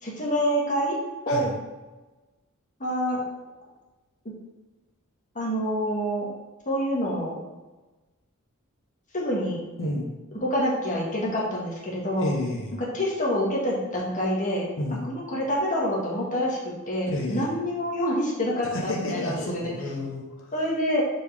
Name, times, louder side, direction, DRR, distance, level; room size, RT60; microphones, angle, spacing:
voice 1, 0.0-1.0 1.3-1.5 2.8-3.2 5.4-6.3 6.7-7.3 9.1-9.6 10.4-12.3 12.9-14.7 15.1-16.6 16.9-19.7 20.5-21.0, equal, 35° left, -3 dB, 1.8 m, -26 dB
voice 2, 9.8-10.1 12.2-12.8 14.8-15.1 17.1-17.5 18.7-20.5, left 1 dB, 60° left, 0 dB, 1.1 m, -30 dB
7.4 x 4.6 x 3.5 m, 1.2 s
head